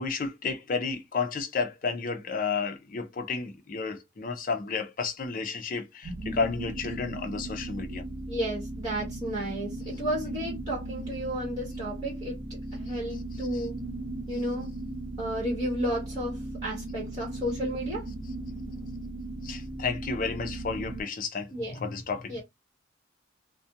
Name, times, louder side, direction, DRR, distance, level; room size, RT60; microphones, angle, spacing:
voice 1, 0.0-8.0 13.5-13.6 19.4-21.5 21.8-22.3, left 4 dB, 45° left, 0.5 m, -32 dB
sound 1, 6.0-21.0, right 2 dB, 70° right, 0.5 m, -37 dB
voice 2, 8.3-13.8 14.3-14.7 15.2-18.1 21.5-21.8 22.3-22.4, equal, 20° right, 1.1 m, -33 dB
2.4 x 2.1 x 2.7 m
head